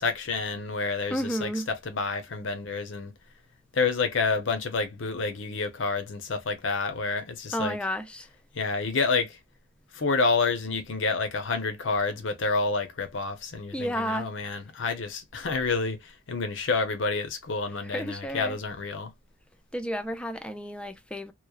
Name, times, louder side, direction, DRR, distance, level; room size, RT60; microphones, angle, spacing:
voice 1, 0.0-3.1 3.7-7.8 8.5-9.4 9.9-19.1, left 4 dB, 75° left, 0.7 m, -29 dB
voice 2, 1.1-1.7 7.5-8.3 13.7-14.3 17.8-18.6 19.7-21.3, equal, 5° left, 0.3 m, -31 dB
3.0 x 2.0 x 2.3 m
head